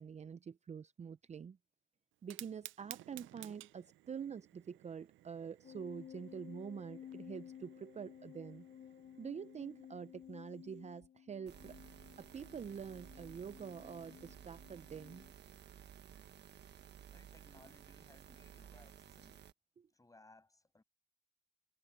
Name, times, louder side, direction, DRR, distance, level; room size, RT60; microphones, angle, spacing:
voice 1, 0.0-1.6 2.2-8.7 9.2-11.7 12.2-15.3 19.8-19.9, right 7 dB, 35° right, 0.6 m, -46 dB
Fire, 2.1-11.0, right 16 dB, 80° right, 0.5 m, -57 dB
sound 1, 5.6-15.3, left 9 dB, 40° left, 0.7 m, -55 dB
sound 2, 11.5-19.5, right 9 dB, 60° right, 1.3 m, -56 dB
voice 2, 17.1-19.5 19.9-20.8, left 2 dB, 15° left, 7.5 m, -64 dB
cardioid pair, 90°, 20 cm